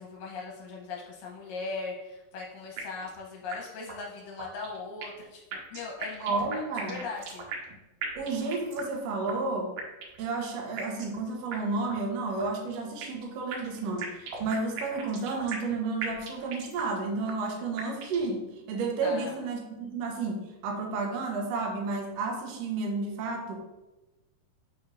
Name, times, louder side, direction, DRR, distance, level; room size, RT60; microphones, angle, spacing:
voice 1, 0.0-7.5 19.0-19.3, left 4 dB, 75° left, -1 dB, 2.3 m, -39 dB
sound 1, 2.8-3.2 3.5-3.6 3.9-4.0 4.4-5.2 5.5-7.7 8.0-9.0 9.3-9.4 9.8-10.3 10.8-11.2 11.5-11.6 11.9-12.0 12.4-13.2 13.5-15.7 16.0-17.0 17.3-17.4 17.8-18.3, right 6 dB, 70° right, 2.2 m, -38 dB
voice 2, 6.2-7.0 8.1-9.7 10.2-23.6, right 3 dB, 90° right, 1 dB, 1.4 m, -31 dB
7.0 x 6.4 x 2.4 m, 1.0 s
omnidirectional pair, 4.3 m